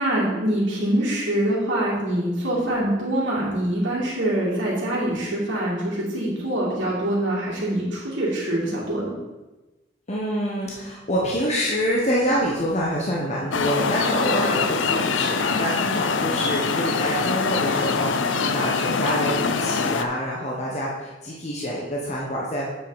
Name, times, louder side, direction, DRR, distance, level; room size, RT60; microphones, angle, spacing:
voice 1, 0.0-9.1, right 1 dB, 70° right, -9 dB, 2.6 m, -24 dB
voice 2, 10.1-22.7, equal, 35° left, -4 dB, 1.2 m, -26 dB
sound 1, 13.5-20.0, left 5 dB, 80° left, 0.6 m, -24 dB
8.5 x 5.8 x 5.1 m, 1.1 s
head